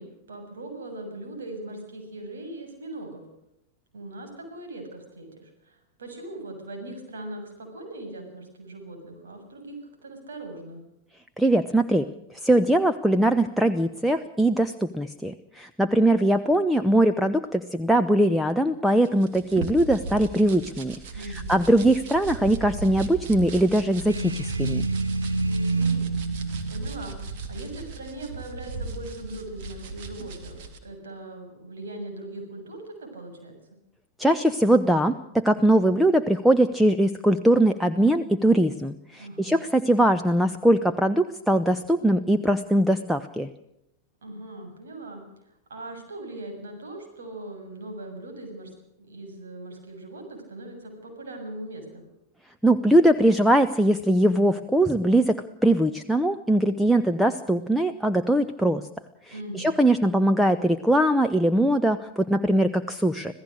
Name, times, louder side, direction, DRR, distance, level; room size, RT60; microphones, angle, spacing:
voice 1, 0.0-3.2 3.9-10.8 21.1-21.5 25.7-26.1 26.7-33.5 39.2-39.6 44.2-45.2 45.7-48.7 49.0-52.0 59.3-59.7, right 2 dB, 65° right, 3 dB, 7.2 m, -40 dB
voice 2, 11.4-12.1 12.4-21.0 21.2-24.9 34.2-43.5 52.6-58.8 59.5-63.3, right 1 dB, ahead, 8 dB, 0.9 m, -21 dB
sound 1, 19.0-30.8, right 3 dB, 50° right, 3.2 m, -37 dB
sound 2, 24.1-28.0, right 3 dB, 80° right, 1.4 m, -28 dB
26.5 x 16.5 x 6.5 m, 0.81 s
figure-of-eight pair, 90°, 0 cm